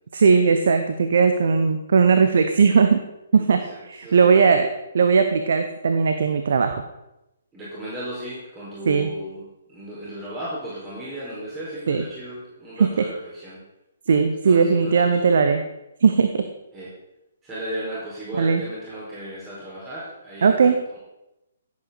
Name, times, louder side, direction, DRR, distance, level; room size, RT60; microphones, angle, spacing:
voice 1, 0.1-3.0 3.3-3.6 3.9-4.7 4.9-6.8 8.9-9.1 11.9-12.0 12.8-13.0 14.1-15.6 16.0-16.5 18.4-18.6 20.4-20.8, right 5 dB, 60° right, 7 dB, 0.9 m, -18 dB
voice 2, 3.3-4.6 7.5-13.6 14.4-15.3 16.7-16.9 17.4-21.0, right 1 dB, 20° right, -8 dB, 5.0 m, -35 dB
15.5 x 8.6 x 4.2 m, 0.92 s
figure-of-eight pair, 130°, 0 cm